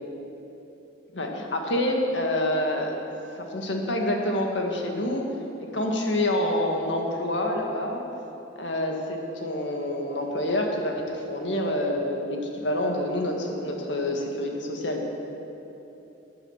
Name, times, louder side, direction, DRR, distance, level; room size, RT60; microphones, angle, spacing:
voice 1, 1.1-3.0 3.4-5.2 5.6-8.0 8.6-15.0, left 1 dB, 90° left, 1 dB, 1.9 m, -27 dB
13.0 x 9.9 x 7.3 m, 3.0 s
head